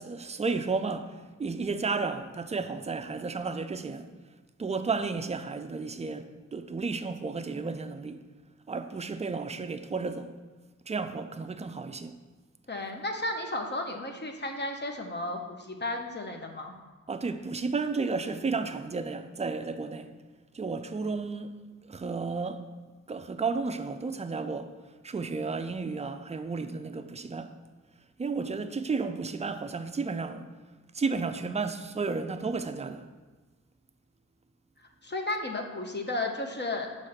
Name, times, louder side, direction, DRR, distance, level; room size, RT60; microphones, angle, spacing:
voice 1, 0.0-4.1 4.6-6.3 6.5-8.2 8.7-10.3 10.9-12.2 17.1-20.1 20.5-21.5 21.8-22.6 23.1-24.7 25.0-27.5 28.2-30.5 30.9-33.1, right 4 dB, 25° right, 0.3 m, -32 dB
voice 2, 12.7-16.7 34.8-37.1, left 2 dB, 35° left, 0.7 m, -34 dB
6.4 x 3.2 x 5.6 m
wide cardioid pair, 115°, 30 cm